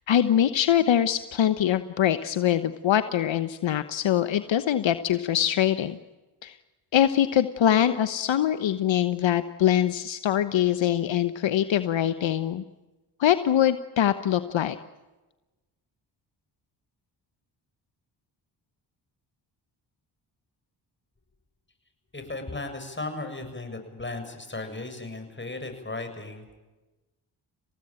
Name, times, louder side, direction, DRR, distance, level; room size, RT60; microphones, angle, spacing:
voice 1, 0.1-6.0 6.4-6.6 6.9-12.6 13.2-14.8, left 10 dB, 70° left, 11 dB, 1.2 m, -23 dB
voice 2, 22.1-26.5, left 2 dB, 25° left, 6 dB, 7.4 m, -36 dB
27.5 x 18.5 x 9.0 m, 1.1 s
supercardioid pair, 50°, 47 cm